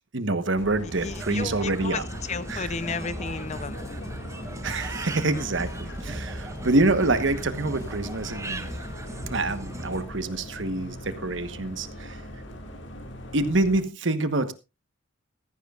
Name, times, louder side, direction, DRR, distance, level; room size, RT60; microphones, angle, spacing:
voice 1, 0.1-2.1 2.5-2.8 4.6-8.7 9.3-12.2 13.3-14.5, right 2 dB, 65° right, 11 dB, 1.2 m, -26 dB
sound 1, 0.6-13.8, left 1 dB, 60° left, 2.1 m, -40 dB
sound 2, 0.9-10.0, right 1 dB, 15° right, 0.9 m, -38 dB
voice 2, 1.0-3.9, left 4 dB, 35° left, 15 dB, 0.7 m, -33 dB
15.0 x 15.0 x 2.5 m, 0.27 s
head